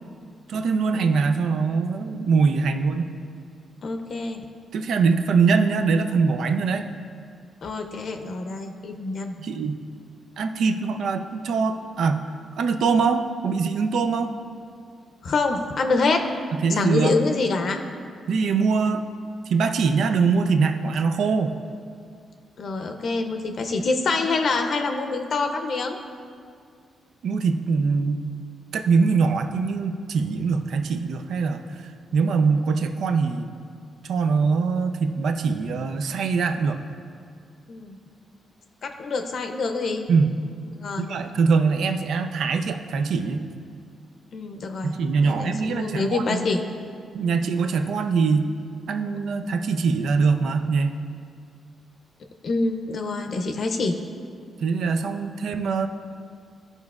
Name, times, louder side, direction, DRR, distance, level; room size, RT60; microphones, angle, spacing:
voice 1, 0.5-3.1 4.7-6.9 9.4-9.8 10.4-12.2 12.6-14.3 16.6-17.2 18.3-19.0 19.5-21.6 27.2-28.3 28.7-31.6 32.1-33.5 34.0-36.8 40.1-40.3 41.0-43.5 44.8-46.4 47.1-48.5 48.9-51.0 54.6-55.9, right 5 dB, 75° right, 6 dB, 0.5 m, -23 dB
voice 2, 3.8-4.4 7.6-9.3 15.2-16.2 16.7-17.8 22.6-26.0 37.7-38.0 38.8-40.0 40.8-41.1 44.3-44.9 45.2-46.6 52.4-54.0, left 3 dB, 60° left, 5 dB, 0.6 m, -26 dB
14.5 x 5.2 x 2.4 m, 2.3 s
cardioid pair, 100°, 0 cm